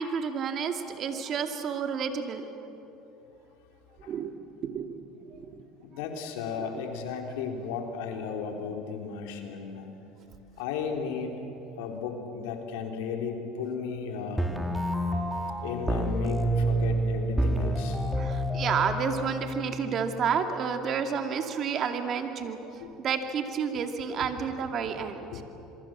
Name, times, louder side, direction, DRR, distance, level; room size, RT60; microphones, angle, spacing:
voice 1, 0.0-2.5 4.1-4.3 4.6-5.0 5.3-5.6 6.6-6.7 18.1-25.4, right 6 dB, 50° right, 6 dB, 2.5 m, -30 dB
voice 2, 5.8-9.9 10.6-11.3 11.8-14.6 15.6-18.0 22.8-22.9 25.3-25.4, left 6 dB, 80° left, 3 dB, 3.3 m, -34 dB
sound 1, 14.4-20.4, right 1 dB, 5° right, 3.1 m, -29 dB
27.0 x 23.0 x 7.6 m, 2.9 s
hypercardioid pair, 85°, 0 cm